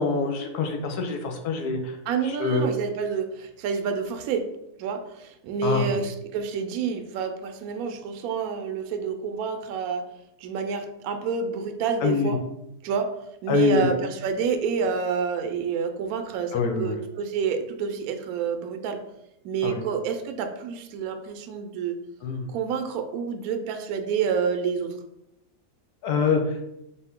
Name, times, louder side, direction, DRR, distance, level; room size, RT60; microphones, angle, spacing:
voice 1, 0.0-2.0 2.2-2.7 5.6-5.9 12.0-12.3 13.5-13.9 16.5-17.0 19.6-19.8 22.2-22.5 26.0-26.6, left 5 dB, 85° left, 4 dB, 1.3 m, -25 dB
voice 2, 2.1-4.4 4.8-10.0 10.4-12.4 12.8-13.2 13.4-19.0 19.4-22.0 22.5-25.0, right 5 dB, 75° right, 6 dB, 1.0 m, -28 dB
4.3 x 2.7 x 3.6 m, 0.84 s
omnidirectional pair, 1.6 m